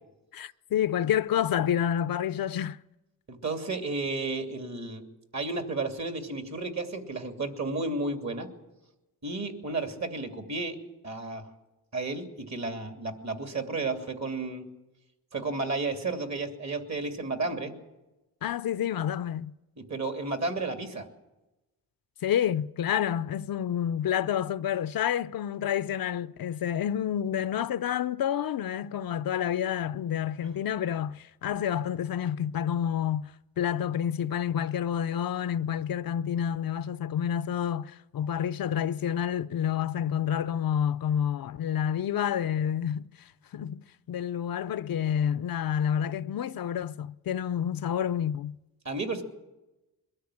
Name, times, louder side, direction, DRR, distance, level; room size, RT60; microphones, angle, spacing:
voice 1, 0.3-2.8 18.4-19.5 22.2-48.6, left 9 dB, 70° left, 0.6 m, -29 dB
voice 2, 3.3-5.0 5.3-8.5 9.2-10.8 11.0-11.4 11.9-14.7 15.3-17.7 19.8-21.0 48.8-49.2, right 3 dB, 50° right, 3.0 m, -32 dB
22.5 x 13.0 x 10.0 m
cardioid pair, 85°, 36 cm